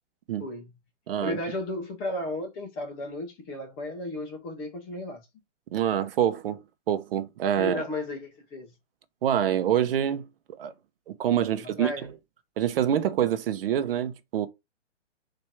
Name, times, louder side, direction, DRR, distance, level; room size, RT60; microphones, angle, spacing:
voice 1, 0.4-0.7 1.2-5.3 7.6-8.7 11.5-12.1, left 1 dB, 15° left, 0.5 m, -34 dB
voice 2, 1.1-1.4 5.7-6.6 6.9-7.8 9.2-10.3 10.6-10.7 11.1-11.9 12.6-14.5, right 10 dB, 50° right, 0.7 m, -26 dB
4.4 x 2.6 x 4.4 m
hypercardioid pair, 145°, 37 cm